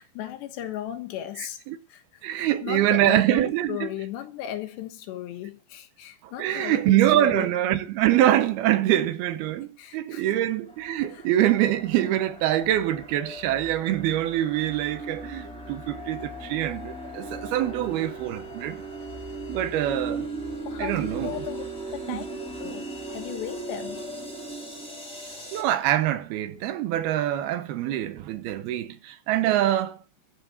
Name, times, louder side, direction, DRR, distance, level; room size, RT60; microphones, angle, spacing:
voice 1, 0.0-1.6 1.9-7.5 9.8-10.3 11.1-11.3 17.6-17.9 20.7-21.6 21.9-24.1, left 12 dB, 90° left, 3.6 m, -36 dB
voice 2, 1.4-1.8 2.2-3.9 6.2-18.8 19.5-20.3 20.8-21.4 22.1-22.2 25.5-30.0, right 13 dB, 75° right, 2.6 m, -24 dB
sound 1, 10.7-25.6, right 2 dB, ahead, 3.1 m, -38 dB
13.0 x 5.9 x 8.0 m
omnidirectional pair, 4.8 m